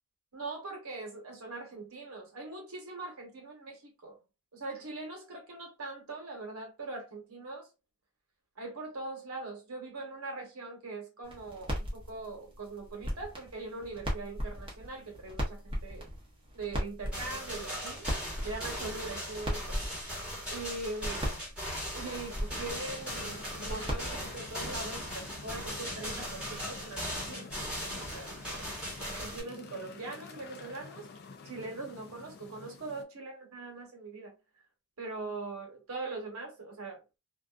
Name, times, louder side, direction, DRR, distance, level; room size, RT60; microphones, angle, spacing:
voice 1, 0.3-4.2 4.5-7.7 8.6-16.1 16.5-18.1 18.4-19.8 20.5-21.5 21.9-28.3 29.1-31.1 31.4-34.4 35.0-37.0, right 3 dB, 75° right, 1.1 m, -41 dB
sound 1, 11.2-24.7, equal, 25° right, 0.8 m, -39 dB
sound 2, 17.1-29.4, equal, 5° right, 1.2 m, -39 dB
sound 3, 22.5-33.0, left 4 dB, 45° left, 0.4 m, -49 dB
2.5 x 2.3 x 2.3 m
head